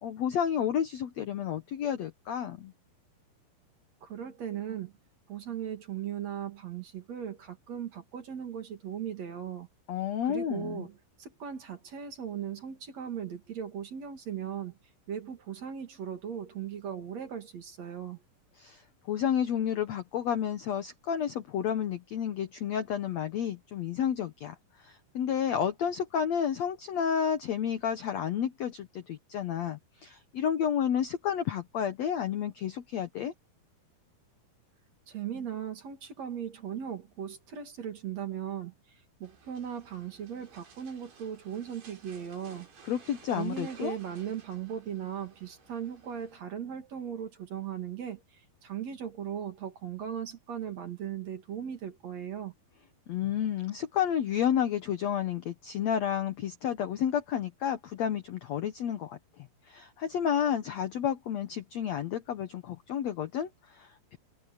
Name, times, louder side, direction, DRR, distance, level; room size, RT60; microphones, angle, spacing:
voice 1, 0.0-2.7 9.9-10.9 18.6-33.3 42.8-44.0 53.1-64.2, left 9 dB, 85° left, 1.5 m, -31 dB
voice 2, 4.0-4.9 5.3-9.7 10.3-10.9 11.2-14.7 15.1-18.2 35.1-38.7 39.2-42.7 43.3-48.2 48.6-52.5, right 8 dB, 45° right, 3.1 m, -38 dB
sound 1, 39.2-46.4, right 6 dB, 70° right, 7.1 m, -56 dB
omnidirectional pair, 4.7 m